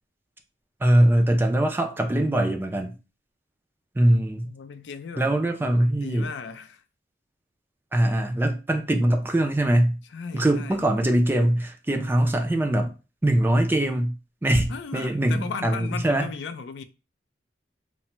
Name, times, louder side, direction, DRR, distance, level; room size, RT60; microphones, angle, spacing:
voice 1, 0.8-2.9 4.0-4.5 5.2-6.3 7.9-10.0 10.3-12.9 13.2-14.1 14.4-16.3, right 1 dB, 10° right, 0.3 m, -22 dB
voice 2, 4.4-5.3 5.9-6.8 10.1-10.9 14.7-16.8, left 5 dB, 80° left, 0.4 m, -36 dB
3.3 x 2.0 x 2.8 m
head